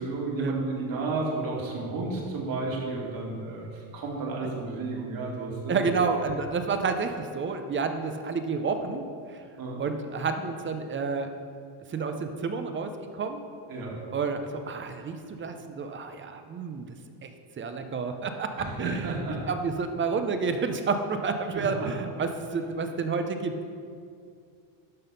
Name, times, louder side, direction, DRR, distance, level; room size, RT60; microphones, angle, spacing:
voice 1, 0.0-5.8 9.6-9.8 13.7-14.0 18.6-19.5 21.5-21.9, right 3 dB, 45° right, -2 dB, 2.3 m, -32 dB
voice 2, 5.7-9.0 9.3-9.4 9.8-11.3 11.9-13.4 14.1-17.0 17.2-17.3 17.6-19.2 19.5-23.7, right 4 dB, 25° right, 7 dB, 0.6 m, -30 dB
12.0 x 4.1 x 5.3 m, 2.3 s
supercardioid pair, 110°, 48 cm